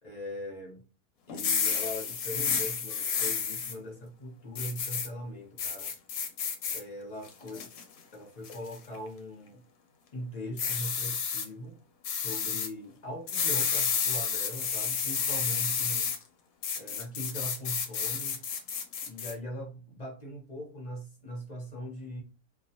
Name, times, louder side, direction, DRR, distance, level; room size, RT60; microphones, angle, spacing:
voice 1, 0.0-0.8 1.3-5.9 6.7-7.7 8.1-9.6 10.1-11.8 12.1-16.1 16.7-18.4 19.0-22.2, equal, 35° left, 0.7 m, -40 dB
sound 1, 1.3-3.7 4.6-5.1 5.6-6.8 7.3-7.8 8.4-8.8 10.6-11.5 12.0-12.7 13.3-16.2 16.6-19.3, left 6 dB, 70° left, 1.0 m, -31 dB
2.4 x 2.2 x 2.7 m
omnidirectional pair, 1.6 m